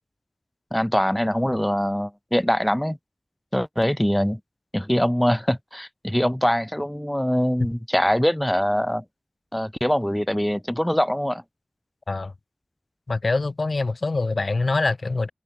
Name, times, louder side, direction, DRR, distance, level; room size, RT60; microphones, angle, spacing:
voice 1, 0.7-3.0 3.5-4.4 4.7-9.0 9.5-11.4, equal, 10° left, 0.7 m, -23 dB
voice 2, 13.1-15.3, left 3 dB, 80° left, 0.8 m, -24 dB
wide cardioid pair, 50°, 0 cm